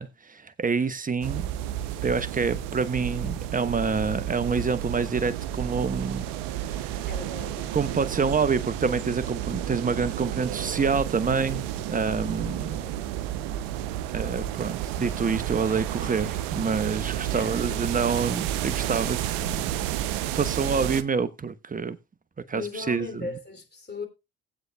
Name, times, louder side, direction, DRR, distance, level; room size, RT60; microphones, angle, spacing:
voice 1, 0.0-1.5 2.0-6.3 6.7-7.1 7.7-12.8 14.1-19.8 20.3-22.0 22.5-23.3, right 5 dB, 25° right, 0.9 m, -27 dB
sound 1, 1.2-21.0, right 11 dB, 80° right, 0.6 m, -31 dB
voice 2, 7.1-8.3 12.6-13.0 17.3-17.8 19.8-20.1 22.5-24.1, left 4 dB, 30° left, 2.8 m, -39 dB
17.5 x 7.9 x 2.2 m
hypercardioid pair, 50°, 34 cm